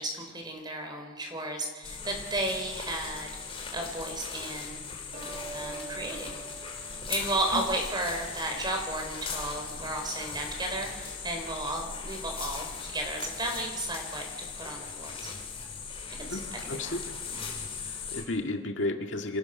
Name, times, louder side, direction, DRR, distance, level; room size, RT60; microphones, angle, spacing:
voice 1, 0.0-3.4 3.7-4.8 5.5-6.3 7.1-15.3 16.1-17.0 17.3-17.4, right 1 dB, 20° right, 3 dB, 4.5 m, -34 dB
sound 1, 1.8-18.2, left 5 dB, 30° left, 3.5 m, -39 dB
sound 2, 5.1-7.8, right 4 dB, 40° right, 6.2 m, -44 dB
voice 2, 16.7-17.0 17.9-19.4, left 2 dB, 70° left, 3 dB, 2.0 m, -32 dB
26.5 x 16.5 x 6.6 m, 1.3 s
head